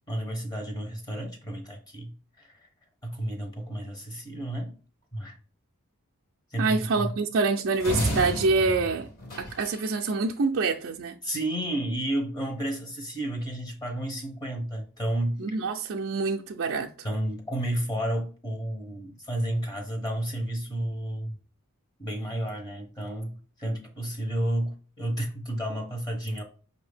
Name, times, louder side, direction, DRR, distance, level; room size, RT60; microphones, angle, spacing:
voice 1, 0.1-2.7 3.0-4.7 5.1-5.4 6.5-7.1 11.2-15.6 17.0-21.3 22.0-26.4, right 1 dB, 20° left, 0.9 m, -31 dB
voice 2, 6.6-9.1 9.4-11.2 15.4-16.9, right 3 dB, 55° right, 0.4 m, -26 dB
sound 1, 7.8-10.0, equal, 45° left, 1.7 m, -31 dB
5.6 x 2.7 x 3.3 m
head